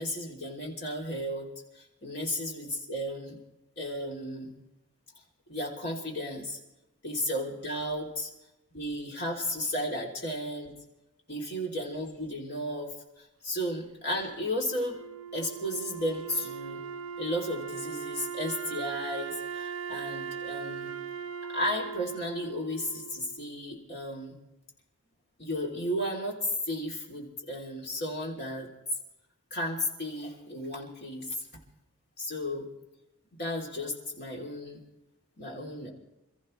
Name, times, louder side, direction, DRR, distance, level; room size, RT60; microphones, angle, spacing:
voice 1, 0.0-1.5 1.7-3.4 3.8-4.5 5.5-6.6 7.0-8.3 8.7-10.7 11.3-15.0 15.3-16.8 17.2-20.9 21.5-24.4 25.4-28.7 29.5-31.4 32.2-32.7 33.3-34.8 35.4-35.9, left 1 dB, 45° left, -2 dB, 3.4 m, -34 dB
Wind instrument woodwind instrument, 14.6-23.7, right 7 dB, 65° right, 1.4 m, -39 dB
28.0 x 14.5 x 3.3 m, 0.95 s
head